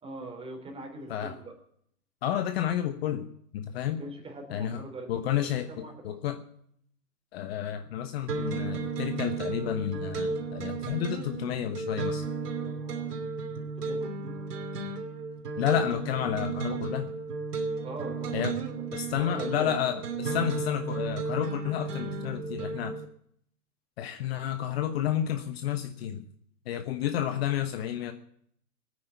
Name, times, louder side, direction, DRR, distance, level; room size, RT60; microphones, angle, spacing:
voice 1, 0.0-1.5 3.7-5.4 5.7-6.2 12.6-13.3 13.6-14.3 17.8-18.5 19.2-19.8, right 2 dB, 10° right, 2 dB, 3.4 m, -42 dB
voice 2, 2.2-3.3 3.5-4.0 4.5-4.8 5.1-6.4 7.3-12.3 15.6-17.1 18.3-18.5 18.9-23.0 24.0-26.2 26.7-28.1, left 10 dB, 40° left, 8 dB, 1.2 m, -31 dB
sound 1, 8.3-23.1, right 4 dB, 75° right, 2.9 m, -34 dB
18.0 x 9.6 x 8.3 m, 0.67 s
hypercardioid pair, 140°, 47 cm